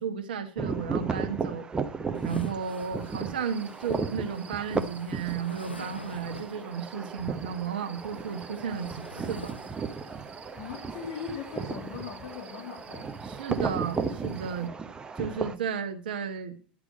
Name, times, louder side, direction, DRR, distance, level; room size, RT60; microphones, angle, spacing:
voice 1, 0.0-1.7 2.2-9.6 13.2-14.7 15.2-16.6, right 7 dB, 65° right, 5 dB, 1.1 m, -34 dB
sound 1, 0.6-15.6, right 4 dB, 15° right, 0.8 m, -35 dB
sound 2, 2.1-6.8 7.8-10.3, left 3 dB, 90° left, 0.5 m, -47 dB
sound 3, 2.8-14.7, right 7 dB, 35° right, 1.4 m, -54 dB
voice 2, 10.6-13.1, left 7 dB, 55° left, 4 dB, 1.5 m, -39 dB
10.5 x 4.8 x 5.0 m, 0.41 s
figure-of-eight pair, 90°, 5 cm